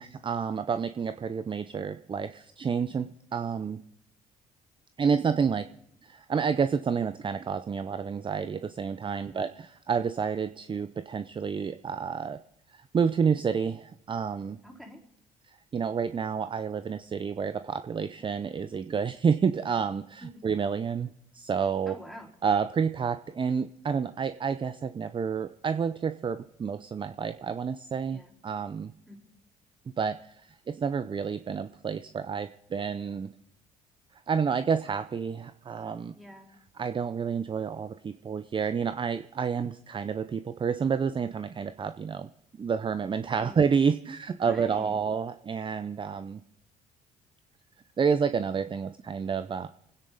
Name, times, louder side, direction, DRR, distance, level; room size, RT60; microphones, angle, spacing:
voice 1, 0.0-3.8 5.0-5.7 6.0-12.4 12.7-14.6 15.5-22.0 22.4-28.9 30.0-33.3 34.3-36.1 36.8-42.3 42.6-46.4 48.0-49.7, right 6 dB, 30° right, 11 dB, 0.6 m, -29 dB
voice 2, 14.6-15.0 20.2-20.4 21.9-22.3 28.1-28.3 29.1-29.3 36.1-36.5 43.3-43.6 44.4-45.0, equal, ahead, -1 dB, 4.3 m, -46 dB
24.5 x 9.8 x 4.1 m, 0.77 s
supercardioid pair, 65°, 17 cm